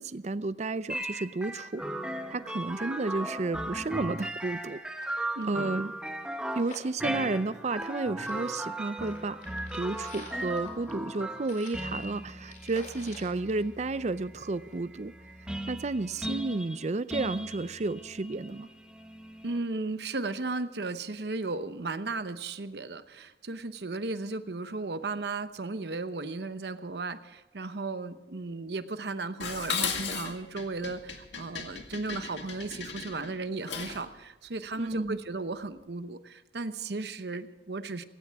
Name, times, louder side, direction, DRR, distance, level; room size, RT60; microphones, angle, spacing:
voice 1, 0.0-1.8 2.3-5.2 5.5-5.9 6.6-9.4 9.7-15.1 15.7-18.7 34.8-35.2, right 3 dB, 40° right, 16 dB, 0.5 m, -32 dB
sound 1, 0.9-19.6, right 1 dB, 5° right, 0.9 m, -37 dB
sound 2, 4.1-4.2 4.4-4.5 4.8-8.0 8.2-14.3 14.7-14.8, left 3 dB, 45° left, 4.2 m, -50 dB
voice 2, 5.3-5.7 19.4-38.0, right 3 dB, 65° right, 11 dB, 0.9 m, -35 dB
Dishes pots and pans, 29.4-34.1, left 6 dB, 85° left, 2.0 m, -36 dB
17.5 x 16.5 x 3.5 m, 1.2 s
head